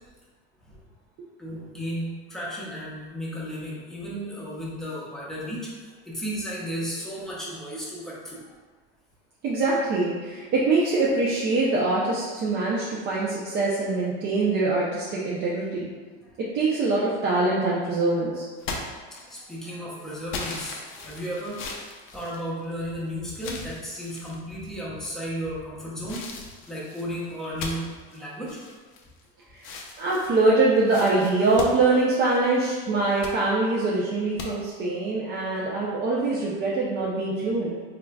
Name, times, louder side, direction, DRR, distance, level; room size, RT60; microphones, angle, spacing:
voice 1, 1.4-8.5 16.2-16.3 19.1-21.6 22.1-26.2 26.7-27.8 28.1-28.6, equal, ahead, -6 dB, 0.7 m, -34 dB
voice 2, 9.4-15.9 16.4-18.4 29.5-37.8, right 3 dB, 35° right, -6 dB, 0.5 m, -24 dB
sound 1, 18.6-19.6 20.3-22.9 23.4-24.4 25.0-25.5 26.1-29.2 29.6-32.6 33.0-33.4 34.4-34.5, left 3 dB, 40° left, 0.5 m, -38 dB
3.7 x 3.4 x 2.2 m, 1.4 s
supercardioid pair, 135°, 32 cm